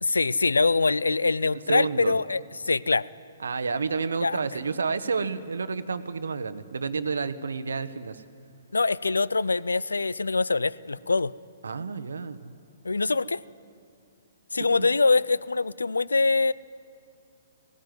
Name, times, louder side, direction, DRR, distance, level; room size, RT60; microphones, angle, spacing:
voice 1, 0.0-3.1 4.2-4.4 8.7-11.3 12.8-13.4 14.5-16.5, left 3 dB, 90° left, 21 dB, 0.4 m, -24 dB
voice 2, 1.7-2.2 3.4-8.2 11.6-12.5 14.8-14.9, right 5 dB, 80° right, 12 dB, 1.1 m, -30 dB
17.0 x 16.5 x 9.5 m, 2.5 s
hypercardioid pair, 130°, 0 cm